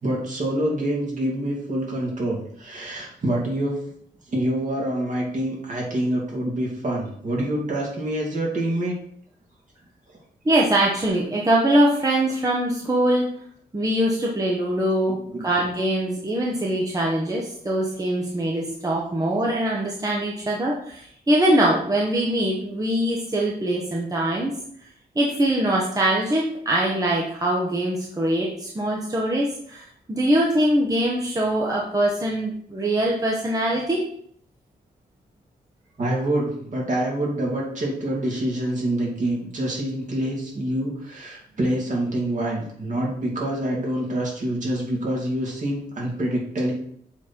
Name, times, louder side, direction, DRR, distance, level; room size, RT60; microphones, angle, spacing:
voice 1, 0.0-3.8 4.3-8.9 15.0-15.5 36.0-46.7, right 1 dB, 50° right, -3 dB, 2.5 m, -26 dB
voice 2, 10.4-13.3 13.7-15.2 15.4-24.5 25.1-34.0, right 1 dB, 20° right, -3 dB, 1.0 m, -22 dB
7.2 x 4.2 x 4.4 m, 0.65 s
wide cardioid pair, 125°, 17 cm